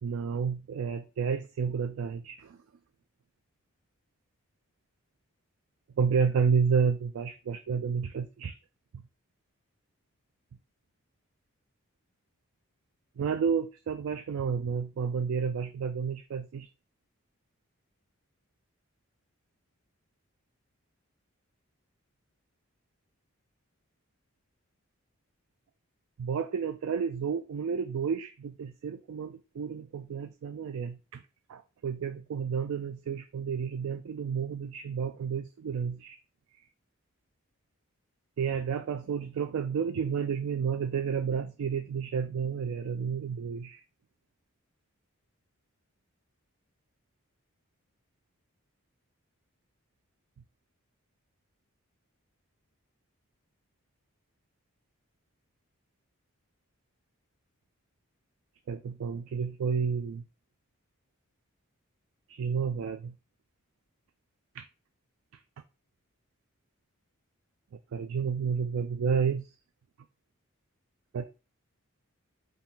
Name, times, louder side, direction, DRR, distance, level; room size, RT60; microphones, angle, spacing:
voice 1, 0.0-2.6 6.0-8.6 13.2-16.7 26.2-31.2 31.5-36.2 38.4-43.8 58.7-60.2 62.3-63.1 64.6-64.7 67.9-69.5 71.1-71.2, right 6 dB, 70° right, 0.3 m, -31 dB
3.6 x 2.7 x 4.2 m
head